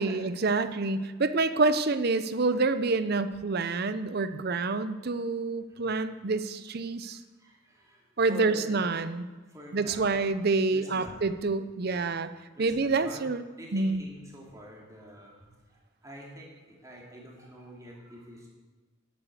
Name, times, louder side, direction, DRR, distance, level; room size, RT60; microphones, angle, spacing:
voice 1, 0.0-7.2 8.2-9.3 9.7-12.3 12.6-13.4 13.7-14.0, right 3 dB, 50° right, 12 dB, 0.6 m, -27 dB
voice 2, 7.0-8.8 9.5-10.4 10.7-11.3 11.9-12.0 12.5-13.2 13.6-18.5, equal, 15° right, -2 dB, 2.7 m, -47 dB
10.5 x 9.0 x 8.1 m, 1.3 s
head